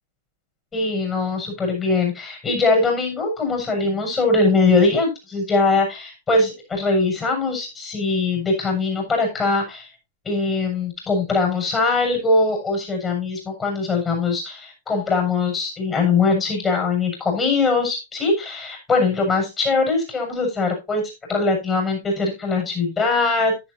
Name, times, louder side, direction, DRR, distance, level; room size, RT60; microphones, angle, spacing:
voice 1, 0.7-9.9 10.2-21.0 21.3-23.5, left 3 dB, 20° left, 2 dB, 6.7 m, -21 dB
11.0 x 11.0 x 2.8 m, 0.24 s
figure-of-eight pair, 105°, 0 cm